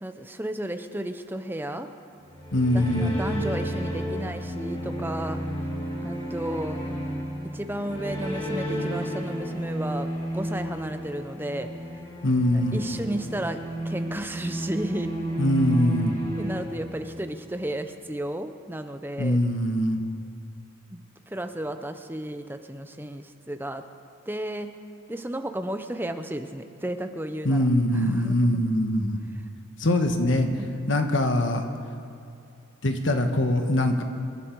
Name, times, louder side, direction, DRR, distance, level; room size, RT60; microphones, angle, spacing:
voice 1, 0.0-1.9 2.7-5.4 6.0-6.8 7.5-10.1 10.3-11.7 12.7-15.1 16.4-19.4 20.9-23.8 24.3-24.7 25.1-27.7 27.9-28.6 30.4-30.7, right 1 dB, 10° right, 8 dB, 0.7 m, -33 dB
sound 1, 2.2-17.4, equal, 25° left, 3.2 m, -32 dB
voice 2, 2.5-3.2 12.2-12.8 15.4-16.1 19.2-20.0 27.4-29.2 29.8-30.5 30.9-31.7 32.8-34.0, left 1 dB, 60° left, 5 dB, 1.4 m, -23 dB
26.5 x 11.5 x 4.7 m, 2.5 s
head